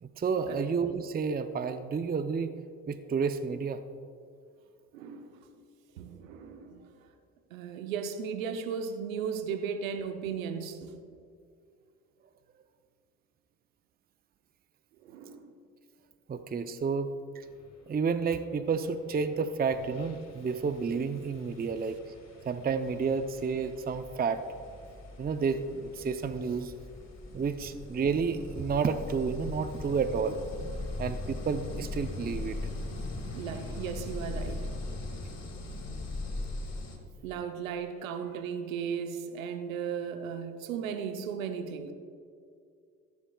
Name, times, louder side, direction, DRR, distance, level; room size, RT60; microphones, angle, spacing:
voice 1, 0.0-2.5 2.9-3.8 16.3-17.4 17.9-22.0 22.4-24.4 25.2-26.7 27.3-30.4 31.0-32.6, right 5 dB, 25° right, 10 dB, 0.6 m, -30 dB
voice 2, 4.9-5.4 6.0-6.9 7.5-11.0 15.0-15.5 33.3-34.6 37.2-41.9, right 7 dB, 90° right, 7 dB, 0.8 m, -36 dB
sound 1, 19.2-19.3 19.7-37.0, left 2 dB, 40° left, 1.9 m, -40 dB
14.0 x 10.5 x 2.3 m, 2.4 s
hypercardioid pair, 50°, 39 cm